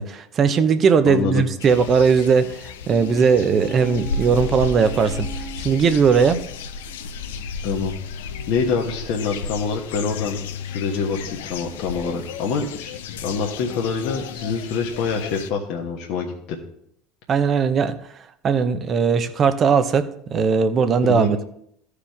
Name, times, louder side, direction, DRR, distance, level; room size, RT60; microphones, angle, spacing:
voice 1, 0.0-5.3 5.6-6.4 17.3-17.9 18.4-21.4, right 6 dB, 40° right, 10 dB, 0.9 m, -18 dB
voice 2, 1.0-1.4 7.6-7.9 8.5-10.4 10.6-12.9 13.2-16.6 21.0-21.3, left 5 dB, 65° left, 0 dB, 1.2 m, -25 dB
sound 1, 1.6-15.5, left 5 dB, 80° left, 0.6 m, -33 dB
sound 2, 2.8-6.6 7.0-7.1, right 5 dB, 65° right, 1.0 m, -39 dB
14.0 x 4.9 x 3.6 m, 0.71 s
hypercardioid pair, 75°, 0 cm